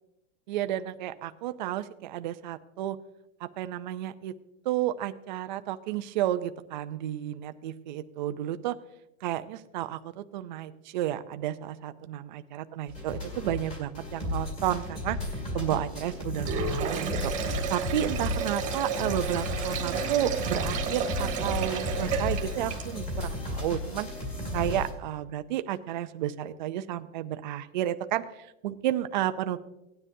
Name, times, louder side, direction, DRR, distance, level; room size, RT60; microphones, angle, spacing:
voice 1, 0.5-3.0 3.4-4.3 4.7-8.8 9.2-24.1 24.5-29.6, right 12 dB, 40° right, 11 dB, 0.4 m, -32 dB
sound 1, 12.9-24.9, left 2 dB, 15° left, 2.1 m, -34 dB
Sink (filling or washing), 16.3-23.2, right 6 dB, 20° right, 1.4 m, -32 dB
17.5 x 9.9 x 2.7 m, 0.91 s
supercardioid pair, 165°, 40 cm